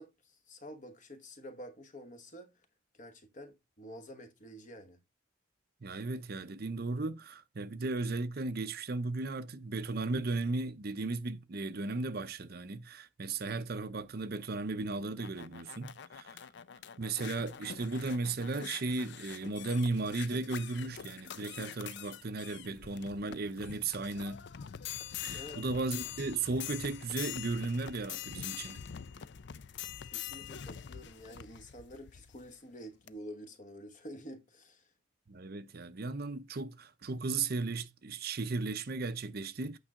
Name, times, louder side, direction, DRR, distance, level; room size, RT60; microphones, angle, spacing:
voice 1, 0.0-2.5 2.9-5.0 25.3-25.6 30.0-34.9, equal, 40° left, 1.2 m, -49 dB
voice 2, 5.8-16.4 17.0-24.4 25.2-28.8 35.3-39.8, right 3 dB, 45° right, 0.6 m, -35 dB
sound 1, 14.9-32.5 33.1-33.2, left 9 dB, 55° left, 0.5 m, -45 dB
8.9 x 5.4 x 3.7 m
head